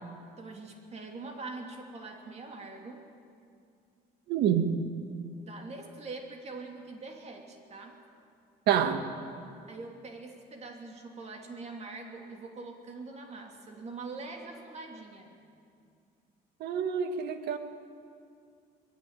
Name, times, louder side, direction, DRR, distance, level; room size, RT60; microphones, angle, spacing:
voice 1, 0.4-3.0 5.4-8.0 9.7-15.4, right 3 dB, 40° right, 2 dB, 2.9 m, -43 dB
voice 2, 4.3-4.8 8.7-9.0 16.6-17.6, right 8 dB, 75° right, 7 dB, 1.7 m, -27 dB
21.0 x 15.0 x 8.9 m, 2.3 s
cardioid pair, 110°, 17 cm